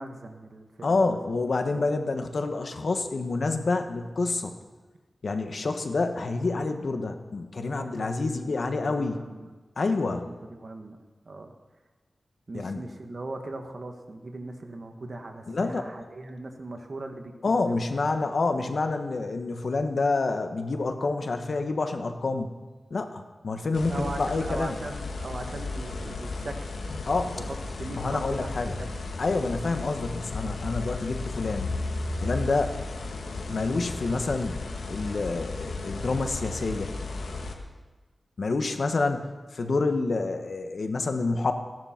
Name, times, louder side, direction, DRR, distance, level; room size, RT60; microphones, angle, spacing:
voice 1, 0.0-1.2 1.7-1.8 7.6-9.5 10.2-11.0 11.2-11.5 12.5-17.8 23.9-26.8 27.3-28.9, right 2 dB, 50° right, 4 dB, 1.5 m, -39 dB
voice 2, 0.8-4.5 5.2-9.2 9.8-10.3 12.5-12.8 15.5-15.8 17.4-22.5 22.9-24.7 27.1-27.4 28.0-28.8 29.2-31.7 32.2-32.7 33.5-34.6 34.9-36.9 38.4-41.5, left 3 dB, 60° left, 6 dB, 1.2 m, -28 dB
sound 1, 23.7-37.5, left 3 dB, 90° left, 1.5 m, -34 dB
16.0 x 11.0 x 5.9 m, 1.3 s
wide cardioid pair, 105°, 0 cm